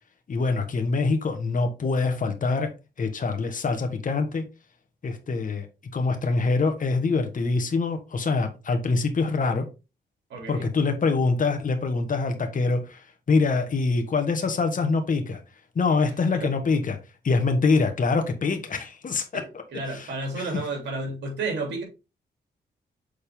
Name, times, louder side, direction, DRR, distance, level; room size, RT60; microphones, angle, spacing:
voice 1, 0.3-2.7 3.0-4.4 5.0-5.7 5.9-9.7 10.5-15.4 15.7-17.0 17.2-19.6 19.9-20.1 20.3-20.5, left 4 dB, 50° left, 1.3 m, -24 dB
voice 2, 10.3-10.6 16.3-16.5 19.3-19.4 19.7-21.8, right 3 dB, 85° right, 3.1 m, -31 dB
6.5 x 4.3 x 3.6 m
cardioid pair, 75°, 18 cm